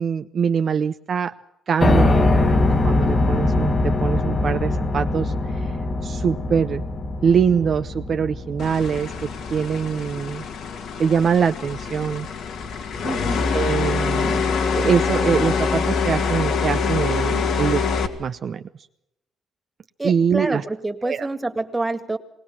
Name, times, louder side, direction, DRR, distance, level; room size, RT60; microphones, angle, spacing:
voice 1, 0.0-1.3 1.7-2.1 2.4-2.5 2.8-5.7 6.0-6.8 7.2-10.5 11.0-12.3 12.8-12.9 13.5-14.4 14.7-17.8 18.2-18.6 20.0-20.6 21.0-21.3, right 7 dB, 55° right, 8 dB, 0.7 m, -23 dB
Piano, 1.8-9.8, left 2 dB, 30° left, 1.4 m, -22 dB
voice 2, 1.8-2.4 13.0-13.5 20.0-22.2, right 2 dB, 15° right, 8 dB, 1.9 m, -27 dB
sound 1, 8.6-18.1, left 5 dB, 75° left, 2.1 m, -24 dB
20.5 x 18.0 x 7.2 m, 0.83 s
cardioid pair, 90°, 0 cm